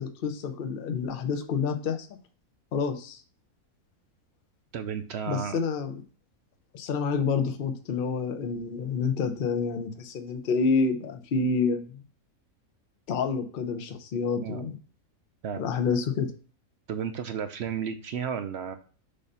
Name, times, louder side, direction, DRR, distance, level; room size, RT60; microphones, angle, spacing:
voice 1, 0.0-2.1 2.7-3.2 5.3-6.0 6.7-12.0 13.1-14.8 15.6-16.3, left 5 dB, 50° left, 6 dB, 0.7 m, -28 dB
voice 2, 4.7-5.6 14.4-14.6 15.4-15.6 16.9-18.8, right 7 dB, 65° right, 8 dB, 0.7 m, -33 dB
6.6 x 2.7 x 5.4 m, 0.39 s
omnidirectional pair, 1.5 m